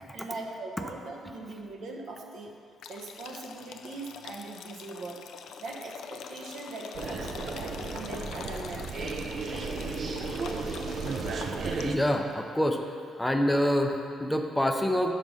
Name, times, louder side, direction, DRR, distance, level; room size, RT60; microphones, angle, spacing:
voice 1, 0.1-2.6 2.9-5.3 5.6-8.9, right 3 dB, 70° right, 1 dB, 0.9 m, -41 dB
sound 1, 2.8-12.1, left 7 dB, 75° left, 0.4 m, -44 dB
sound 2, 6.9-11.9, right 4 dB, 50° right, 0.5 m, -34 dB
voice 2, 11.5-12.9 13.2-15.1, equal, 5° left, 4 dB, 0.5 m, -27 dB
5.4 x 5.2 x 6.2 m, 2.4 s
cardioid pair, 90°, 0 cm